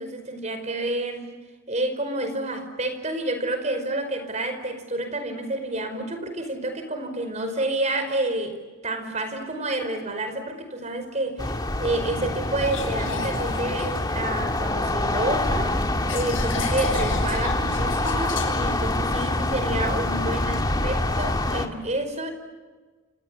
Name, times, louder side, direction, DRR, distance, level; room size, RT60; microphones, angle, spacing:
voice 1, 0.0-1.4 1.7-15.7 16.1-22.3, right 2 dB, 35° right, 8 dB, 5.1 m, -29 dB
sound 1, 11.4-21.7, left 1 dB, 20° left, 2.0 m, -25 dB
sound 2, 12.6-14.7 15.1-20.4, left 4 dB, 75° left, 7.9 m, -36 dB
29.5 x 29.0 x 6.9 m, 1.4 s
head